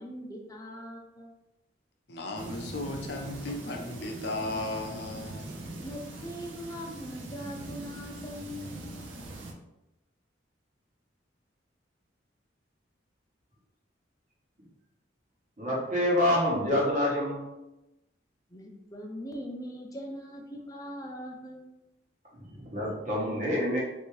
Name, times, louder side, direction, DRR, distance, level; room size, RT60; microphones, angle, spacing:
voice 1, 0.0-1.3 5.8-8.9 18.5-21.6, equal, 20° left, 1 dB, 0.5 m, -41 dB
voice 2, 2.1-5.5, left 2 dB, 60° left, 2 dB, 0.6 m, -35 dB
sound 1, 2.4-9.5, right 2 dB, 85° right, 0.6 m, -42 dB
voice 3, 15.6-17.4 22.5-23.8, left 1 dB, 40° right, -5 dB, 1.1 m, -27 dB
3.3 x 2.7 x 3.1 m, 0.94 s
head